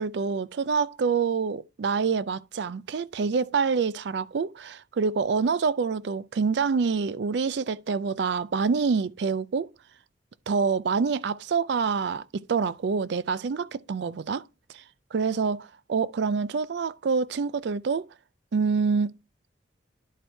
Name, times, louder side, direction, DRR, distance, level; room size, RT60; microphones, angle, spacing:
voice 1, 0.0-9.7 10.5-14.4 14.7-14.8 15.1-18.1 18.5-19.2, right 5 dB, 65° right, 0.4 m, -26 dB
11.0 x 4.3 x 4.5 m
head